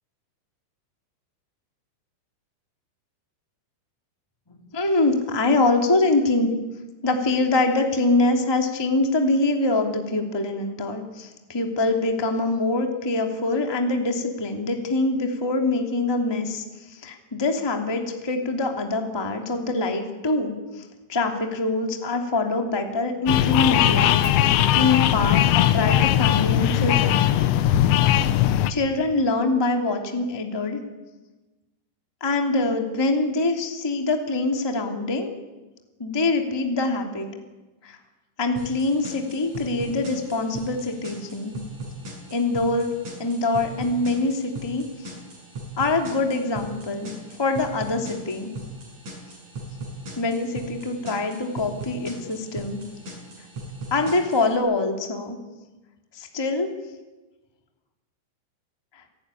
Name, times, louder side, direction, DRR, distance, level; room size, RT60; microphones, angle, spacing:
voice 1, 4.5-6.5 7.0-27.3 28.7-30.8 32.2-35.3 36.0-37.3 37.8-38.0 38.4-41.6 42.3-42.9 43.2-45.1 45.8-47.1 47.4-48.5 50.2-52.8 53.9-55.4 56.1-56.7 58.9-59.0, left 2 dB, 10° left, 3 dB, 1.8 m, -24 dB
sound 1, 23.3-28.7, left 12 dB, 75° left, 3.1 m, -19 dB
sound 2, 38.6-54.6, right 2 dB, 40° right, 7.6 m, -39 dB
27.5 x 18.0 x 9.9 m, 1.2 s
omnidirectional pair, 5.3 m